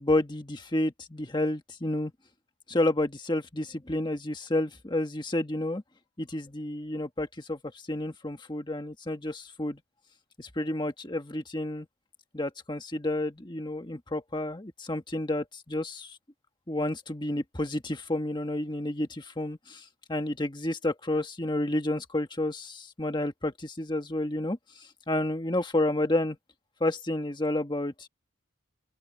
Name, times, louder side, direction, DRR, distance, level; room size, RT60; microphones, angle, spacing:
voice 1, 0.0-2.1 2.7-5.8 6.2-7.6 7.9-9.8 10.4-11.9 12.3-16.2 16.7-19.8 20.1-24.6 25.1-26.4 26.8-28.1, left 1 dB, 20° left, 1.5 m, -30 dB
open air
head